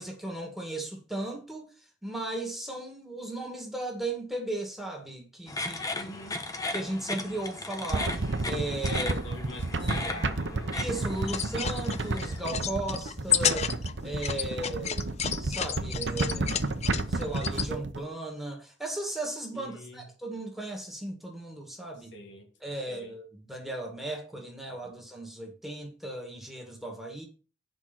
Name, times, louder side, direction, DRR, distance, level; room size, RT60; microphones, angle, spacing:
voice 1, 0.0-1.7 2.0-6.1 6.7-9.2 9.8-10.2 10.7-13.8 14.0-16.7 17.1-22.1 22.6-27.3, right 1 dB, ahead, 2.2 m, -36 dB
sound 1, 5.5-12.4, left 2 dB, 20° left, 1.0 m, -37 dB
voice 2, 5.9-6.4 9.0-10.7 19.5-20.0 21.9-22.5 22.9-23.1 24.8-24.9, left 1 dB, 80° left, 2.7 m, -45 dB
sound 2, 7.9-18.0, right 2 dB, 90° right, 0.9 m, -32 dB
sound 3, 11.2-17.7, left 8 dB, 35° left, 0.5 m, -32 dB
8.8 x 5.4 x 5.9 m
head